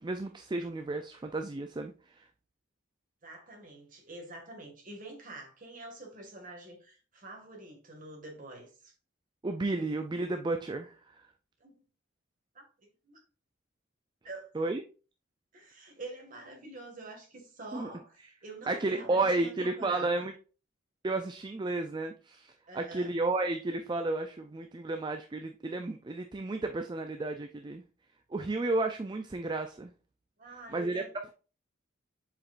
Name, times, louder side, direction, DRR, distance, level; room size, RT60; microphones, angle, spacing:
voice 1, 0.0-2.3 9.4-11.1 14.5-14.8 17.7-17.9 18.7-20.3 21.0-27.8 28.3-29.9 30.7-31.0, right 2 dB, 20° right, 0.4 m, -32 dB
voice 2, 3.2-8.9 11.6-11.8 12.5-13.2 14.2-14.5 15.5-20.3 22.7-23.1 30.4-31.1, right 2 dB, 40° right, 2.0 m, -47 dB
7.5 x 4.9 x 2.5 m
head